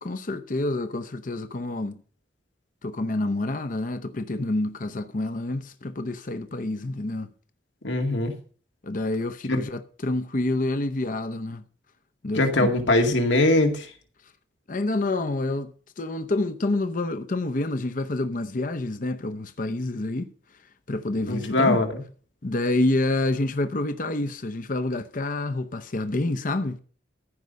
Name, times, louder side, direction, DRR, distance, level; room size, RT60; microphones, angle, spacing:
voice 1, 0.0-2.0 2.8-7.3 8.8-11.6 12.2-12.8 14.7-15.7 16.0-20.3 20.9-21.8 22.4-26.8, left 2 dB, 45° left, 0.8 m, -28 dB
voice 2, 7.8-8.3 9.5-9.6 12.3-13.9 21.3-22.0, left 2 dB, 85° left, 2.2 m, -21 dB
14.5 x 5.5 x 7.4 m
head